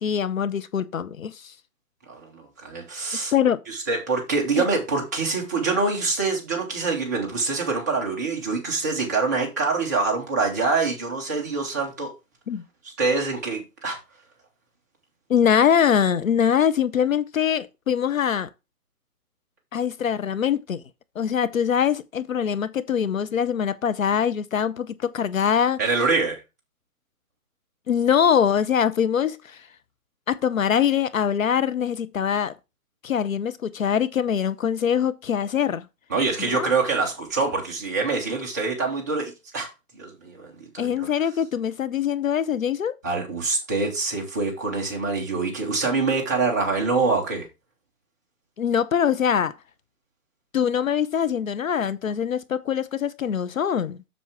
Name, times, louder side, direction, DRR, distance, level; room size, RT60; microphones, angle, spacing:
voice 1, 0.0-1.5 3.3-3.6 4.6-4.7 12.5-12.6 15.3-18.5 19.7-20.8 21.2-25.8 27.9-29.6 30.3-32.5 33.0-35.9 36.4-36.7 40.8-43.0 48.6-49.5 50.5-54.0, left 8 dB, 60° left, 0.7 m, -23 dB
voice 2, 2.1-3.3 3.7-12.1 13.0-14.0 25.8-26.4 36.1-39.7 40.0-41.1 43.0-47.5, right 4 dB, 10° right, 0.7 m, -25 dB
7.6 x 6.8 x 3.5 m
hypercardioid pair, 155°, 47 cm